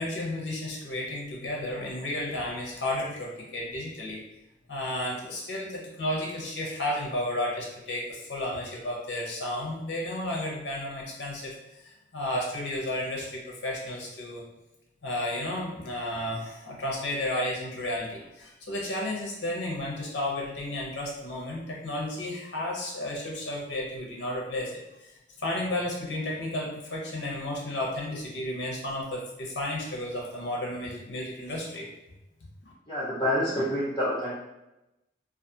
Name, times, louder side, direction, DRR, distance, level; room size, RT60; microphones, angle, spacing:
voice 1, 0.0-4.2 4.7-11.5 11.8-14.4 15.0-31.8 32.6-32.7, left 1 dB, 70° left, -2 dB, 0.7 m, -33 dB
voice 2, 32.9-34.3, equal, 25° left, -10 dB, 0.6 m, -27 dB
2.4 x 2.4 x 2.6 m, 0.94 s
head